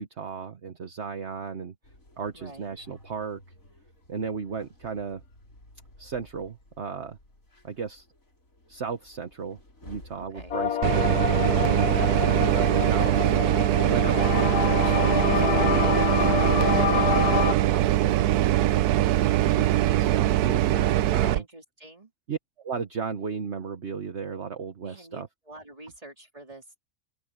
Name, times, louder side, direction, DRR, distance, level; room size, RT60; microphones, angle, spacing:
voice 1, 0.0-1.7 2.2-3.4 4.1-5.2 6.0-7.2 7.6-8.1 8.7-9.6 9.8-13.2 13.9-16.5 16.9-18.4 18.7-19.1 19.4-21.4 22.3-25.3, right 6 dB, 50° right, 1.4 m, -35 dB
sound 1, 1.8-20.4, left 1 dB, 60° left, 5.9 m, -56 dB
voice 2, 2.3-2.8 10.1-10.6 20.7-22.1 24.8-26.8, right 2 dB, 20° right, 3.5 m, -47 dB
sound 2, 10.5-17.5, left 10 dB, 80° left, 1.4 m, -27 dB
sound 3, 10.8-21.4, right 13 dB, 80° right, 1.2 m, -22 dB
open air
omnidirectional pair, 1.6 m